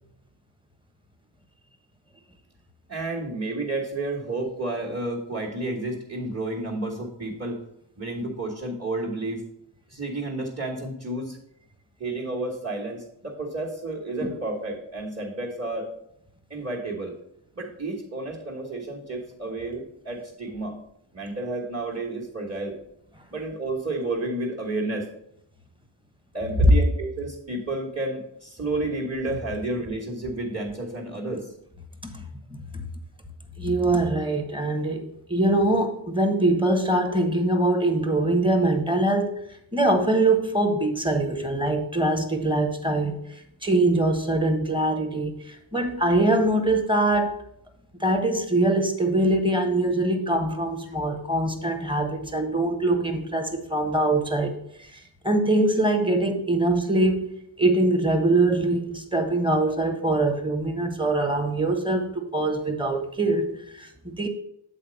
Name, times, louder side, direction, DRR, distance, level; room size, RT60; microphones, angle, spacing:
voice 1, 2.9-7.6 8.0-9.4 9.9-11.4 12.0-15.9 16.5-17.1 17.5-20.8 21.1-22.7 23.3-25.1 26.3-31.5, right 2 dB, 30° right, -6 dB, 1.7 m, -31 dB
voice 2, 32.5-32.8 33.6-35.0 35.3-39.4 39.7-43.2 43.6-47.4 48.0-57.3 57.6-64.3, right 2 dB, 10° right, 4 dB, 1.2 m, -23 dB
7.8 x 4.2 x 5.3 m, 0.76 s
wide cardioid pair, 50°, 48 cm